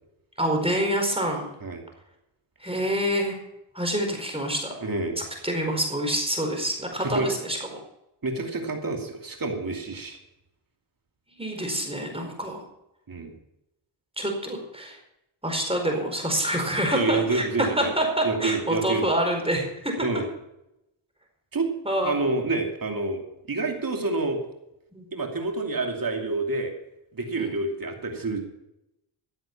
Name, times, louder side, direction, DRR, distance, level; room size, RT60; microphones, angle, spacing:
voice 1, 0.4-1.5 2.6-3.4 3.7-4.7 5.4-7.8 11.4-12.6 14.2-15.0 15.4-19.9 21.8-22.1 24.9-25.0 27.4-27.6, right 1 dB, 10° right, 2 dB, 4.6 m, -27 dB
voice 2, 4.8-5.2 7.0-7.3 8.2-10.2 13.1-13.3 16.9-17.9 18.2-19.1 20.0-20.3 21.5-21.7 22.0-24.4 25.1-26.7 27.1-28.4, right 3 dB, 45° right, 3 dB, 2.8 m, -28 dB
15.0 x 7.8 x 7.2 m, 0.86 s
cardioid pair, 65°, 49 cm